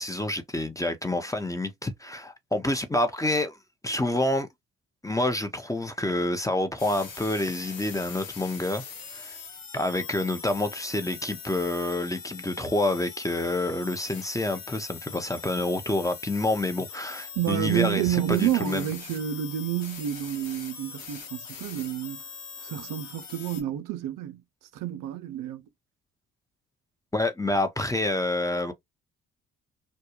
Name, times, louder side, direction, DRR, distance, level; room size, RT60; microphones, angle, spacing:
voice 1, 0.0-3.6 3.8-4.5 5.0-8.8 9.1-9.4 9.7-18.9 27.1-28.7, left 1 dB, 10° left, 0.6 m, -28 dB
sound 1, 6.8-23.6, left 6 dB, 65° left, 1.0 m, -42 dB
voice 2, 17.4-22.2 22.6-24.4 24.7-25.6, right 12 dB, 60° right, 0.5 m, -29 dB
2.2 x 2.1 x 2.8 m
hypercardioid pair, 45°, 36 cm